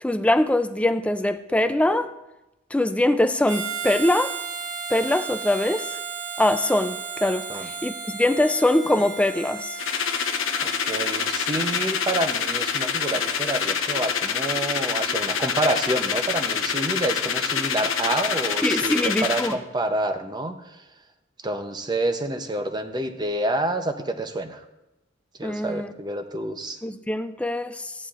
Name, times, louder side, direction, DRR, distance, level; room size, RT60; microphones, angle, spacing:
voice 1, 0.0-2.1 2.7-4.4 4.9-6.0 6.4-9.8 18.6-19.6 25.4-25.9 26.8-27.9, left 1 dB, 5° left, 0.3 m, -23 dB
Harmonica, 3.5-13.7, right 5 dB, 90° right, 4.4 m, -35 dB
sound 1, 9.8-19.5, left 7 dB, 65° left, 0.8 m, -26 dB
voice 2, 10.6-20.8 21.4-24.6 25.4-26.8, right 1 dB, 20° right, 0.7 m, -28 dB
15.5 x 11.0 x 2.5 m
head